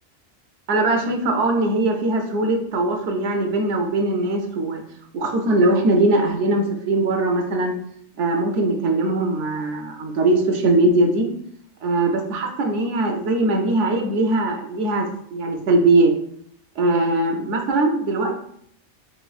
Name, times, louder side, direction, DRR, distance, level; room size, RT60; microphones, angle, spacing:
voice 1, 0.7-4.8 5.1-7.7 8.2-11.3 11.8-16.1 16.8-18.4, right 2 dB, 75° right, 3 dB, 0.9 m, -20 dB
4.2 x 3.2 x 2.3 m, 0.69 s
omnidirectional pair, 1.3 m